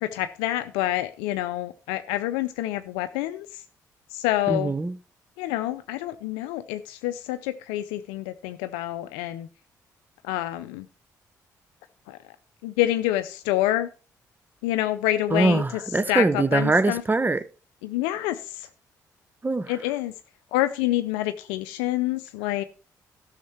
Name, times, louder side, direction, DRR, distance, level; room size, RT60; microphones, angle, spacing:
voice 1, 0.0-3.6 4.1-4.7 5.4-9.5 10.2-10.9 12.1-12.2 12.6-13.9 14.6-15.6 16.1-17.0 17.8-18.7 19.7-20.1 20.5-22.6, left 14 dB, 85° left, 0.5 m, -27 dB
voice 2, 4.5-4.9 15.3-17.4 19.4-19.7, right 3 dB, 20° right, 0.8 m, -22 dB
12.5 x 6.5 x 4.4 m
hypercardioid pair, 45°, 8 cm